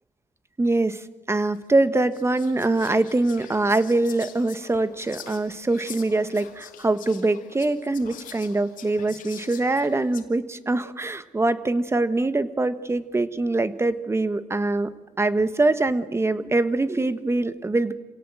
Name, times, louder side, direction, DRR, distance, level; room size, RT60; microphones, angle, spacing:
voice 1, 0.6-14.9 15.2-17.9, right 2 dB, 20° right, 12 dB, 1.4 m, -23 dB
Whispering, 1.5-1.6 2.1-10.2, left 9 dB, 75° left, 2.4 m, -45 dB
27.5 x 17.5 x 7.7 m, 1.2 s
cardioid pair, 90°, 14 cm